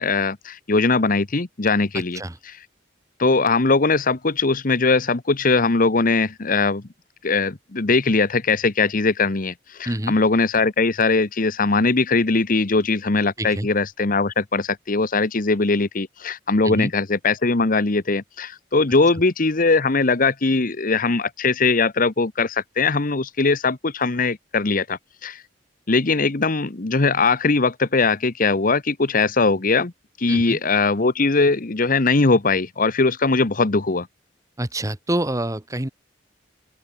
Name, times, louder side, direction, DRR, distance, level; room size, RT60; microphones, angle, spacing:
voice 1, 0.0-2.6 3.2-6.8 7.2-9.5 9.8-25.4 25.9-29.9 30.2-34.1, left 3 dB, 50° left, 1.1 m, -20 dB
voice 2, 30.3-30.6 34.6-35.9, right 1 dB, 20° right, 1.4 m, -26 dB
open air
head